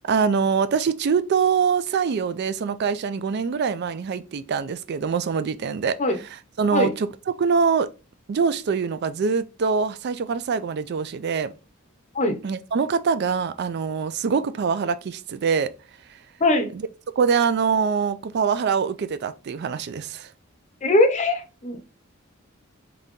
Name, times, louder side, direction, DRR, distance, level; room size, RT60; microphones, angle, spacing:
voice 1, 0.0-6.0 6.6-7.1 7.4-7.9 8.3-11.5 12.4-15.7 17.2-20.3, right 6 dB, 50° right, 0.3 m, -24 dB
voice 2, 16.4-16.7 20.8-21.8, left 2 dB, 35° left, 0.6 m, -21 dB
3.8 x 2.8 x 3.5 m
head